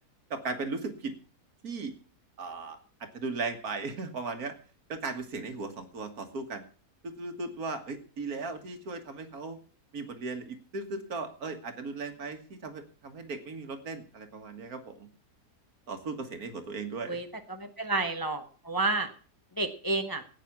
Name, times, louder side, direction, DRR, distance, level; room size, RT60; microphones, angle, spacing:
voice 1, 0.3-1.1 1.6-1.9 2.4-4.5 4.9-6.6 7.0-9.6 9.9-15.1 15.9-17.2, right 3 dB, 65° right, 8 dB, 2.0 m, -37 dB
voice 2, 17.1-19.1 19.6-20.2, right 3 dB, 15° left, 7 dB, 0.9 m, -30 dB
14.0 x 9.2 x 6.0 m, 0.40 s
omnidirectional pair, 1.7 m